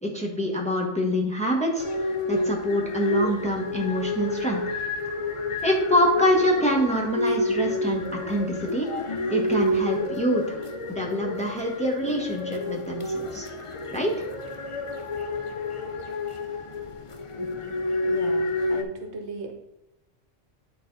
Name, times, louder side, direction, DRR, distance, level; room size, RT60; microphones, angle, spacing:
voice 1, 0.0-4.6 5.6-8.9 9.3-10.6 10.9-13.5 13.9-14.1, equal, 5° left, -1 dB, 1.2 m, -25 dB
sound 1, 1.8-18.8, left 2 dB, 40° left, 0.4 m, -29 dB
voice 2, 18.0-19.5, right 4 dB, 65° right, 3 dB, 1.2 m, -37 dB
10.5 x 4.3 x 3.9 m, 0.92 s
omnidirectional pair, 1.3 m